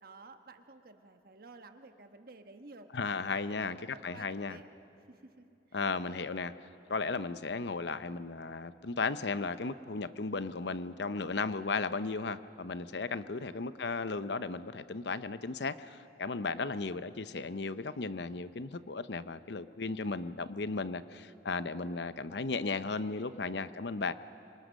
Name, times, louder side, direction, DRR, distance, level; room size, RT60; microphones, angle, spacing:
voice 1, 0.0-2.9 3.4-4.7 5.1-5.5 13.1-13.8, right 3 dB, 55° right, 7 dB, 1.3 m, -53 dB
voice 2, 2.9-4.6 5.7-6.5 6.9-24.1, left 4 dB, 70° left, 13 dB, 0.7 m, -35 dB
26.0 x 25.5 x 6.4 m, 2.7 s
head